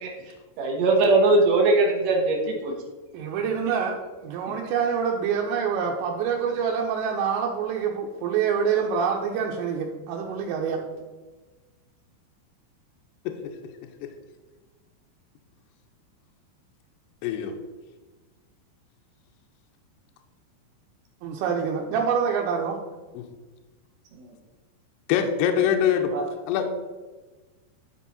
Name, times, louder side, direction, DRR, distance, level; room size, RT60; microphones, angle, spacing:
voice 1, 0.6-2.7 26.1-26.2, right 2 dB, 70° right, 1 dB, 2.1 m, -20 dB
voice 2, 3.1-10.8 21.2-22.8, right 6 dB, 85° right, -1 dB, 3.0 m, -26 dB
voice 3, 17.2-17.5 23.1-23.3 25.1-26.1 26.5-26.7, left 8 dB, 85° left, 4 dB, 2.5 m, -23 dB
11.5 x 4.6 x 4.1 m, 1.2 s
omnidirectional pair, 5.1 m